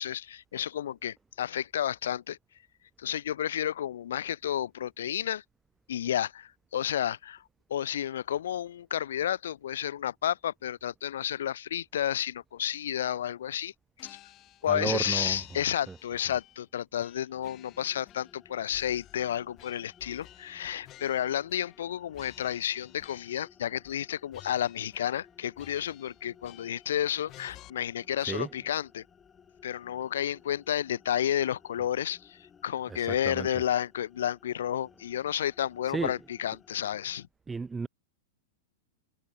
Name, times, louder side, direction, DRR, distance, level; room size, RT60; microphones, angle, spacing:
voice 1, 0.0-2.4 3.0-5.4 5.9-7.4 7.7-13.7 14.0-14.2 14.6-29.0 29.6-37.3, left 10 dB, 75° left, 0.3 m, -31 dB
sound 1, 14.0-15.0 15.3-16.6 17.0-18.4 18.7-21.9 22.1-23.5 23.8-24.0 24.3-25.3 25.6-26.9 27.3-27.7, left 15 dB, 40° left, 5.3 m, -54 dB
voice 2, 14.7-15.6 15.9-16.0 28.2-28.5 32.9-33.6 35.8-36.2 37.5-37.9, right 4 dB, 15° right, 0.5 m, -34 dB
sound 2, 17.3-37.3, left 7 dB, 20° left, 2.8 m, -59 dB
hypercardioid pair, 110°, 0 cm